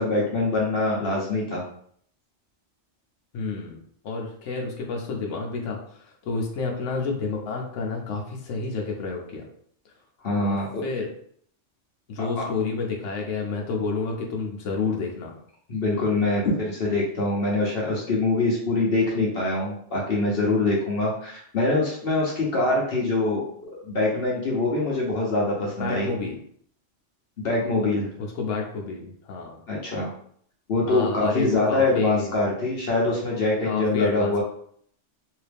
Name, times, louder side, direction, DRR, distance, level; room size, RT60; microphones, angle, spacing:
voice 1, 0.0-1.6 10.2-10.8 15.7-23.4 23.8-26.1 27.4-28.1 29.7-30.1 30.7-34.4, left 2 dB, 55° left, -4 dB, 1.0 m, -24 dB
voice 2, 3.3-3.8 4.0-9.5 10.4-11.1 12.1-15.3 25.6-26.4 28.2-29.6 30.9-32.4 33.6-34.4, left 4 dB, 90° left, 0 dB, 1.0 m, -30 dB
3.1 x 2.8 x 3.3 m, 0.62 s
omnidirectional pair, 1.2 m